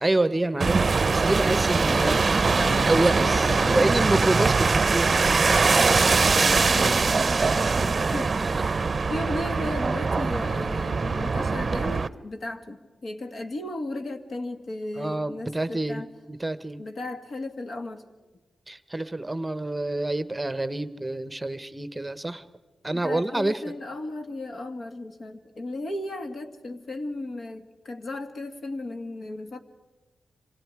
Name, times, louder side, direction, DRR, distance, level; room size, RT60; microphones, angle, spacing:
voice 1, 0.0-2.2 2.9-6.1 8.1-8.5 15.0-16.0 16.3-16.8 18.7-22.4 22.8-23.6, right 2 dB, 15° right, 14 dB, 0.9 m, -27 dB
sound 1, 0.6-12.1, right 4 dB, 45° right, 0.7 m, -22 dB
voice 2, 1.9-2.3 2.6-4.0 6.3-8.8 9.1-16.1 16.8-18.1 22.9-29.6, left 2 dB, 60° left, 6 dB, 2.0 m, -35 dB
27.0 x 26.0 x 4.8 m, 1.2 s
wide cardioid pair, 90°, 0 cm